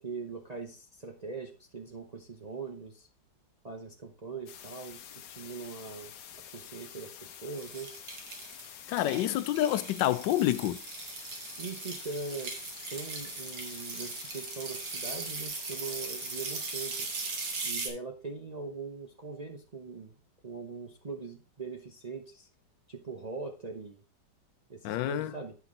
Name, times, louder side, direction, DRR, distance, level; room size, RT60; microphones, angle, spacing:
voice 1, 0.0-3.1 3.6-6.1 6.5-7.9 11.6-12.5 12.9-17.1 17.6-20.1 20.4-22.5 22.9-24.0 24.7-25.6, right 4 dB, 35° right, 0.6 m, -41 dB
sound 1, 4.5-17.7, left 9 dB, 70° left, 1.2 m, -48 dB
sound 2, 7.6-17.9, right 4 dB, 70° right, 2.1 m, -39 dB
voice 2, 8.9-10.8 24.8-25.3, left 13 dB, 85° left, 1.3 m, -28 dB
9.0 x 5.8 x 3.8 m
omnidirectional pair, 1.9 m